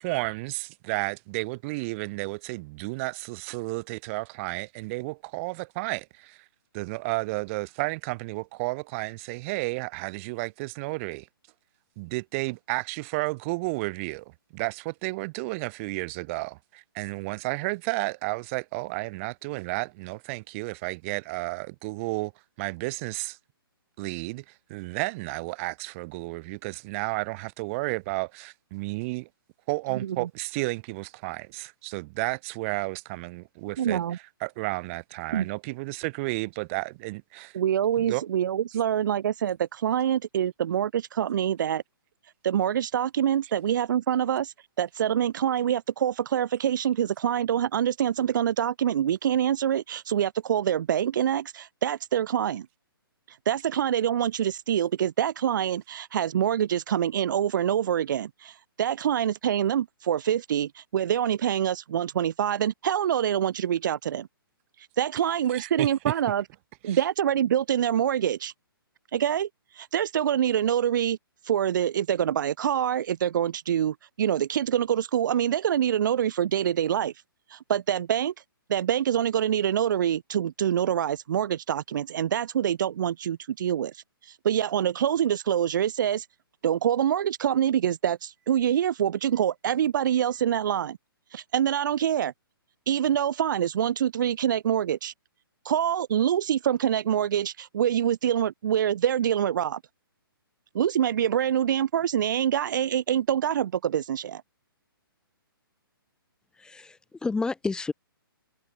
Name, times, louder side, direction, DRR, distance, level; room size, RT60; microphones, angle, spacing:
voice 1, 0.0-6.4 6.7-11.3 12.0-14.2 14.5-22.3 22.6-23.4 24.0-24.4 24.7-29.3 29.7-37.6 38.1-38.2 65.5-66.1 66.9-67.0, right 25 dB, 35° right, 3.7 m, -32 dB
voice 2, 29.9-30.3 33.8-34.2 35.3-35.5 37.5-41.8 42.4-52.7 53.3-64.3 64.8-66.4 66.8-68.5 69.1-71.2 71.4-77.1 77.5-78.3 78.7-86.3 86.6-91.0 91.3-92.3 92.9-95.1 95.6-99.8 100.7-104.4, right 9 dB, 55° right, 1.6 m, -25 dB
voice 3, 106.6-107.9, left 3 dB, 5° left, 3.1 m, -30 dB
hypercardioid pair, 140°, 12 cm